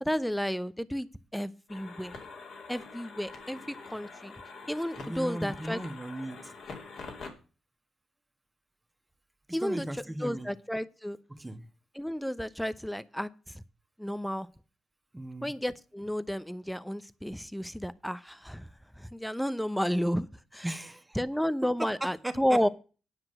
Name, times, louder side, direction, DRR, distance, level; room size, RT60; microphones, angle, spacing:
voice 1, 0.0-2.1 2.7-4.3 4.7-5.8 9.5-11.2 11.9-13.6 14.0-14.5 15.4-18.7 18.9-20.3 20.5-20.7 21.2-22.7, equal, 5° left, 0.8 m, -32 dB
sound 1, 1.7-7.3, left 4 dB, 70° left, 2.8 m, -45 dB
voice 2, 5.0-6.5 9.6-10.5 11.3-11.6 15.1-15.5 20.6-21.2 21.8-21.9 22.2-22.6, right 1 dB, 15° right, 1.4 m, -37 dB
10.0 x 5.9 x 7.8 m
hypercardioid pair, 45°, 0 cm